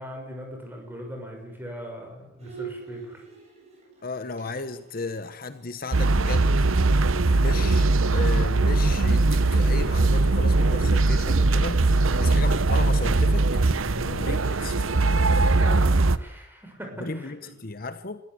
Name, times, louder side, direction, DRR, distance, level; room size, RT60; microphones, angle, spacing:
voice 1, 0.0-3.2 12.1-12.4 13.8-14.2 15.5-17.5, equal, 10° right, 2 dB, 6.2 m, -40 dB
Bowed string instrument, 2.4-6.7 7.0-7.1 7.4-7.7 8.0-10.9, right 6 dB, 30° right, 8.0 m, -45 dB
voice 2, 4.0-6.7 7.4-13.5 14.0-14.9 17.0-18.2, left 3 dB, 45° left, 11 dB, 1.0 m, -35 dB
sound 1, 5.9-16.2, right 2 dB, 80° right, 0.9 m, -21 dB
23.5 x 15.0 x 8.5 m, 0.83 s
head